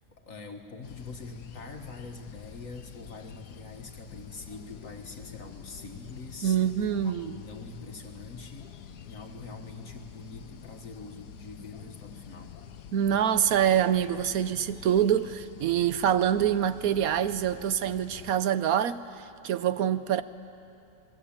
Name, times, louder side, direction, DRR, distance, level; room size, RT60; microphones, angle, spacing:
voice 1, 0.2-6.6 7.0-8.7 9.0-12.6, left 3 dB, 55° left, 1.8 m, -44 dB
sound 1, 0.8-18.3, left 8 dB, 80° left, 1.4 m, -47 dB
voice 2, 6.4-7.4 12.9-19.0 19.4-20.2, right 9 dB, 65° right, 1.2 m, -25 dB
27.5 x 20.0 x 8.7 m
omnidirectional pair, 1.7 m